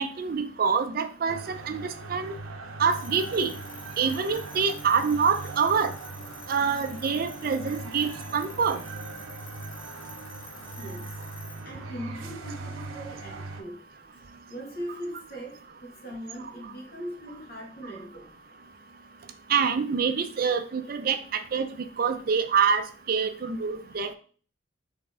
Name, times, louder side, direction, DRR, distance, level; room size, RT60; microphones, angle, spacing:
voice 1, 0.0-1.8 2.1-2.3 2.8-3.5 4.0-5.9 6.5-8.8 19.5-24.1, right 6 dB, 45° right, 8 dB, 0.4 m, -26 dB
sound 1, 1.3-13.6, right 3 dB, 85° right, 0.6 m, -40 dB
sound 2, 2.9-11.7, left 1 dB, 65° left, 1.2 m, -48 dB
voice 2, 10.8-11.2 11.6-13.8 14.5-18.3 20.3-20.4 20.8-20.9 23.9-24.0, equal, 50° left, -1 dB, 1.6 m, -40 dB
4.1 x 3.4 x 3.7 m, 0.42 s
head